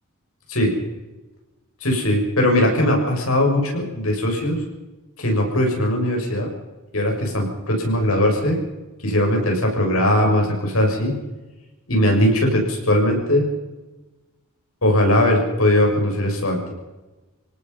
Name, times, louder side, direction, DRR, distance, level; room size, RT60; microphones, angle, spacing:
voice 1, 1.8-4.6 5.2-6.5 6.9-8.6 9.0-11.2 11.9-13.5 14.8-16.7, left 1 dB, 90° left, 1 dB, 6.9 m, -19 dB
27.0 x 18.5 x 5.6 m, 1.1 s
head